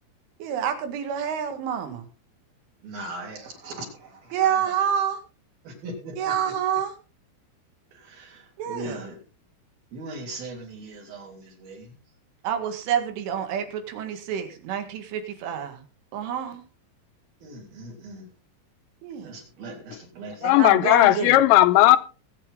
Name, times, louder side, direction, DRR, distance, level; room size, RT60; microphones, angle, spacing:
voice 1, 0.4-2.1 4.3-5.2 6.2-6.9 8.6-9.0 12.4-15.8 16.1-16.6 19.0-19.3 20.4-21.4, right 8 dB, 90° right, 4.5 m, -28 dB
voice 2, 2.8-4.7 5.6-6.5 7.9-9.2 9.9-12.0 17.4-18.3 19.2-20.5, right 2 dB, 55° right, 5.1 m, -40 dB
voice 3, 20.4-22.0, left 15 dB, 80° left, 3.0 m, -16 dB
20.5 x 8.8 x 3.9 m
omnidirectional pair, 5.4 m